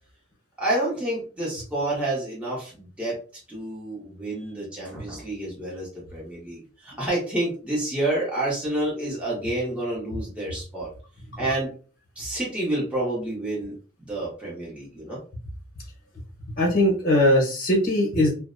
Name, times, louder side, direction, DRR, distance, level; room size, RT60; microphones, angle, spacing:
voice 1, 0.6-3.2 3.5-10.9 11.4-11.7 12.2-15.2, right 1 dB, 5° right, -6 dB, 0.8 m, -29 dB
voice 2, 16.6-18.3, left 1 dB, 45° left, -1 dB, 0.9 m, -20 dB
2.5 x 2.0 x 2.4 m, 0.38 s
head